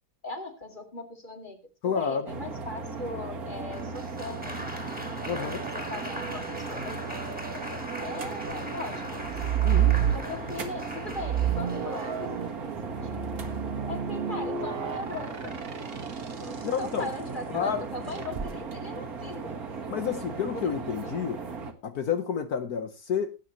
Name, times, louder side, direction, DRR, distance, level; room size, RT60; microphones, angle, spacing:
voice 1, 0.2-5.0 5.4-9.4 10.1-13.4 13.9-15.6 16.4-19.6 20.4-21.2, left 2 dB, 30° left, 2.5 m, -40 dB
voice 2, 1.8-2.2 5.3-5.6 9.6-10.0 16.6-17.1 17.5-17.8 19.9-21.4 21.8-23.4, left 7 dB, 65° left, 1.4 m, -29 dB
sound 1, 2.3-21.7, right 4 dB, 60° right, 2.1 m, -37 dB
Applause, 3.7-12.6 13.4-13.8, equal, 5° right, 2.4 m, -41 dB
sound 2, 9.2-10.7 11.1-16.6 18.2-18.5, right 10 dB, 40° right, 1.4 m, -29 dB
17.5 x 8.8 x 3.0 m
omnidirectional pair, 1.8 m